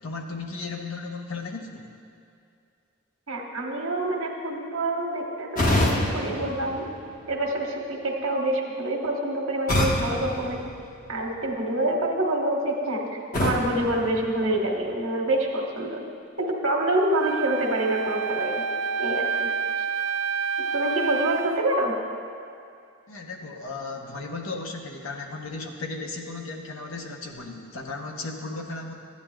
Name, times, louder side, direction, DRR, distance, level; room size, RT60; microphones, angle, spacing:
voice 1, 0.0-1.9 23.1-28.9, left 3 dB, 80° left, 2 dB, 0.9 m, -35 dB
voice 2, 3.3-6.9 7.3-10.6 11.1-13.1 13.4-16.0 16.4-18.6 19.0-19.5 20.7-21.9, right 1 dB, 90° right, 0 dB, 1.2 m, -26 dB
sound 1, 5.6-7.5 9.7-11.4 13.3-15.0, left 1 dB, 40° left, 1.0 m, -27 dB
Wind instrument woodwind instrument, 17.2-21.7, right 5 dB, 65° right, 0.4 m, -28 dB
13.5 x 9.3 x 2.3 m, 2.4 s
head